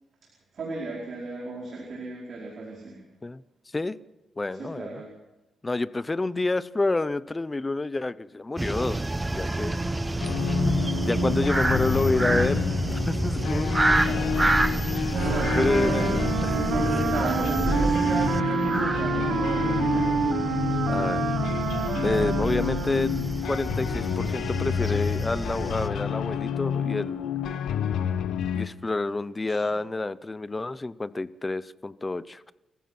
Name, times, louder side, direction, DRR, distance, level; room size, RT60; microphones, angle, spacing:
voice 1, 0.5-3.0 4.5-5.1 9.4-9.9 10.5-10.9 13.1-14.5 14.8-20.3 22.7-23.1 29.5-29.6, right 2 dB, 45° right, -3 dB, 5.0 m, -34 dB
voice 2, 4.4-5.0 5.6-9.0 9.3-9.8 11.0-12.7 13.1-13.7 15.1-16.5 20.9-21.3 21.9-27.3 28.5-32.5, left 2 dB, 15° left, 16 dB, 0.6 m, -28 dB
sound 1, 8.6-25.9, right 2 dB, 15° right, 0.8 m, -28 dB
sound 2, 10.2-28.7, left 8 dB, 75° left, 1.2 m, -29 dB
Wind instrument woodwind instrument, 15.1-23.3, right 7 dB, 70° right, 1.4 m, -29 dB
29.0 x 15.0 x 6.0 m, 1.0 s
cardioid pair, 145°, 0 cm